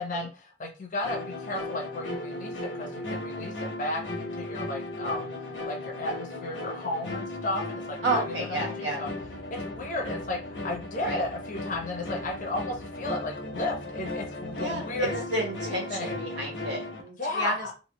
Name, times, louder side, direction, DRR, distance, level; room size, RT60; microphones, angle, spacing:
voice 1, 0.0-5.3 5.7-8.2 8.6-9.1 9.5-15.2 15.7-16.2 17.2-17.7, left 2 dB, 45° left, 0 dB, 0.7 m, -34 dB
sound 1, 1.0-17.0, left 2 dB, 70° left, 1.0 m, -36 dB
voice 2, 8.0-9.0 11.0-11.2 14.5-17.7, right 2 dB, 80° right, -1 dB, 1.4 m, -31 dB
3.0 x 2.6 x 2.9 m, 0.33 s
head